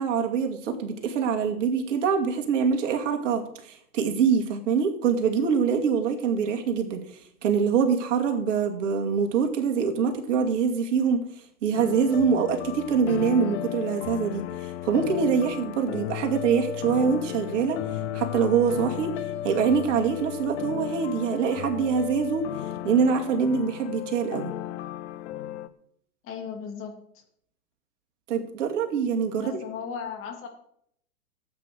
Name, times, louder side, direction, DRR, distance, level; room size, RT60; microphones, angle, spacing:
voice 1, 0.0-11.2 11.6-17.8 18.1-19.2 19.4-22.5 22.8-24.5 28.3-29.6, right 6 dB, 50° right, 3 dB, 2.5 m, -24 dB
sound 1, 11.7-25.7, left 12 dB, 45° left, 1.0 m, -34 dB
voice 2, 26.2-26.9 29.4-30.5, left 7 dB, 25° left, 3 dB, 2.8 m, -36 dB
15.0 x 8.5 x 6.3 m, 0.70 s
figure-of-eight pair, 115°, 46 cm